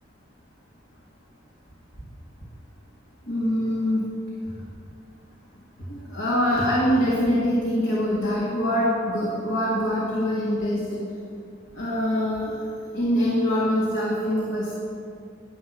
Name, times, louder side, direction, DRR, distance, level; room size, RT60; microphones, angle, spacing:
voice 1, 3.3-4.0 4.5-4.6 5.9-11.0 11.7-12.6 12.9-14.7, equal, 85° left, -6 dB, 1.9 m, -24 dB
11.0 x 5.7 x 7.5 m, 2.4 s
head